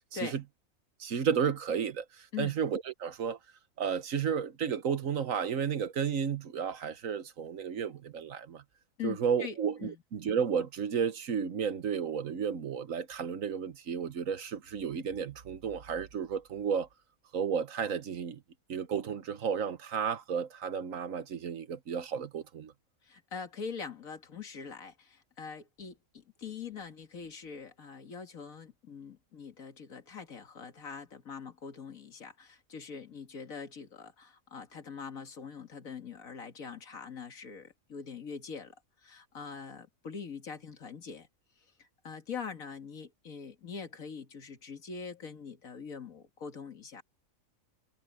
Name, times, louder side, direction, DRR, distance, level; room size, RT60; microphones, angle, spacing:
voice 1, 1.0-3.4 3.8-8.6 9.0-16.9 17.3-18.4 18.7-22.7, right 7 dB, 70° right, 1.5 m, -32 dB
voice 2, 9.0-10.0 23.0-38.8 39.0-41.3 41.8-47.0, left 6 dB, 80° left, 2.3 m, -43 dB
omnidirectional pair, 1.4 m